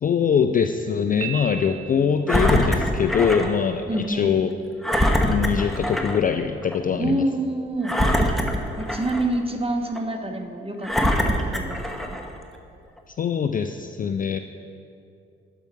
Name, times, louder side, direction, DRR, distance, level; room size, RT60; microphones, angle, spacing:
voice 1, 0.0-4.5 5.3-7.2 13.2-14.4, left 7 dB, 30° left, 7 dB, 0.4 m, -23 dB
Piano, 1.2-2.3, right 10 dB, 50° right, 0.9 m, -34 dB
Engine, 2.3-3.5 4.0-4.1 4.8-6.2 6.6-6.8 7.8-9.4 9.9-10.0 10.8-12.3 13.0-13.1, equal, ahead, 1.0 m, -23 dB
voice 2, 3.9-4.4 7.0-7.9 8.8-10.9 11.2-12.2, right 1 dB, 20° right, 4 dB, 1.2 m, -27 dB
11.5 x 4.7 x 5.6 m, 2.4 s
figure-of-eight pair, 40°, 30 cm